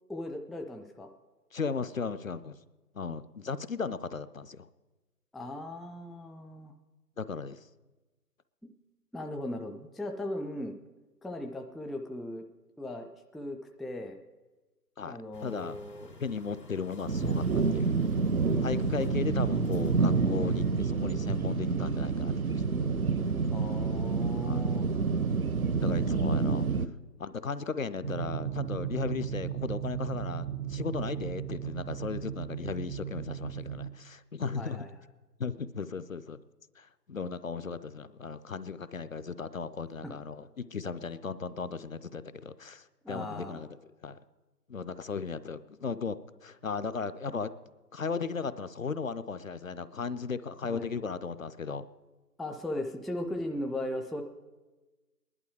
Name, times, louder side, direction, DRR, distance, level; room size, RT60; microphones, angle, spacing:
voice 1, 0.1-1.1 5.3-6.7 9.1-10.8 11.2-12.4 12.8-14.2 15.0-16.1 23.5-24.9 34.6-34.9 40.0-40.1 43.0-43.6 50.6-50.9 52.4-54.2, left 1 dB, ahead, 4 dB, 0.4 m, -38 dB
voice 2, 1.5-2.6 2.9-4.7 7.2-7.6 15.0-15.8 16.2-18.0 18.6-22.7 24.4-24.6 25.8-26.7 27.2-34.9 35.4-36.4 36.8-43.7 44.0-44.2 44.7-47.5 47.9-51.8, left 5 dB, 55° left, 13 dB, 0.5 m, -36 dB
sound 1, 15.3-20.7, left 3 dB, 80° left, 2.4 m, -50 dB
sound 2, 17.1-26.9, right 4 dB, 60° right, 0.7 m, -28 dB
sound 3, 28.0-33.9, right 10 dB, 80° right, 1.2 m, -36 dB
19.0 x 11.0 x 4.8 m, 1.2 s
figure-of-eight pair, 155°, 49 cm